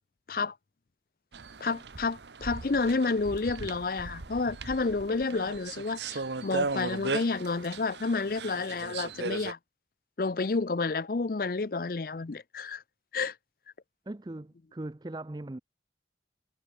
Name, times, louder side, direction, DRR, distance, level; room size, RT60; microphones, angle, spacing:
sound 1, 1.3-9.5, right 4 dB, 80° right, 1.1 m, -37 dB
voice 1, 1.6-9.6 10.2-12.8 13.1-13.3, left 3 dB, 50° left, 0.6 m, -30 dB
voice 2, 14.1-15.6, right 1 dB, 25° right, 0.5 m, -39 dB
head